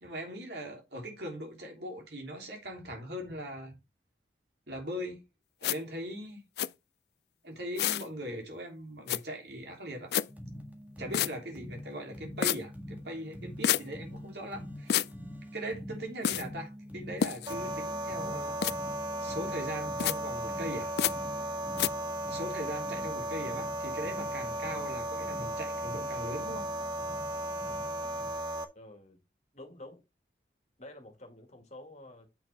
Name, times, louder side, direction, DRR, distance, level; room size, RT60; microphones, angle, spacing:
voice 1, 0.0-3.7 4.7-5.2 5.6-6.4 7.4-10.1 11.0-15.0 15.5-18.6 19.2-20.9 22.3-26.7, equal, 70° right, 3.2 m, -40 dB
sound 1, 5.6-5.8 6.6-6.7 7.8-8.1 9.1-9.2 10.1-10.3 11.1-11.3 12.4-12.6 13.6-13.8 14.9-15.1 16.2-16.4 17.2-17.5 18.6-18.7 20.0-20.2 21.0-21.1 21.8-21.9, left 10 dB, 65° left, 0.4 m, -28 dB
sound 2, 10.3-28.3, equal, 10° right, 1.6 m, -46 dB
sound 3, 17.5-28.6, right 1 dB, 25° right, 0.9 m, -35 dB
voice 2, 28.7-29.2 29.5-30.0 30.8-32.3, left 1 dB, 40° left, 2.1 m, -49 dB
8.6 x 6.1 x 3.5 m
head